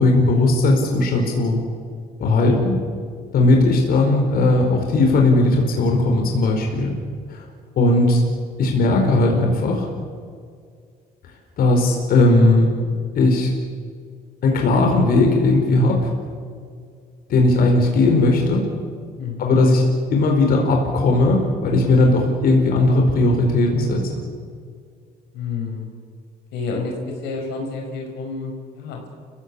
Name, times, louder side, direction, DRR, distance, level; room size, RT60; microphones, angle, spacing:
voice 1, 0.0-1.6 2.2-2.8 3.3-6.9 7.3-7.4 7.8-8.2 8.6-9.9 11.6-12.7 13.1-13.5 14.4-16.1 17.3-18.7 19.4-19.8 20.1-24.1, left 2 dB, 60° left, 2 dB, 4.7 m, -17 dB
voice 2, 19.2-19.6 25.3-25.9 26.5-29.1, left 4 dB, 85° left, 2 dB, 5.1 m, -29 dB
29.5 x 16.0 x 8.6 m, 2.1 s
cardioid pair, 110°, 17 cm